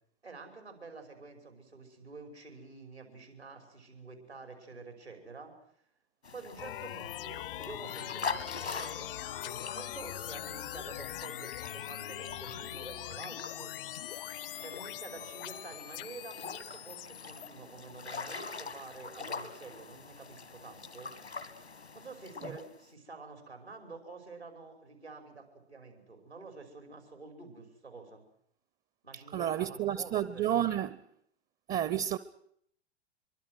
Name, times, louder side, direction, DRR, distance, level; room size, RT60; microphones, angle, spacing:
voice 1, 0.2-5.5 6.3-9.2 9.7-13.8 14.6-21.1 21.9-28.2 29.0-30.5, right 4 dB, 85° right, 5.5 m, -49 dB
sound 1, 6.2-22.9, left 4 dB, 85° left, 2.1 m, -44 dB
sound 2, 6.6-17.5, left 13 dB, 60° left, 0.9 m, -42 dB
voice 2, 29.3-31.0 31.7-32.2, right 11 dB, 25° right, 0.8 m, -30 dB
25.0 x 24.0 x 6.4 m
figure-of-eight pair, 90°, 32 cm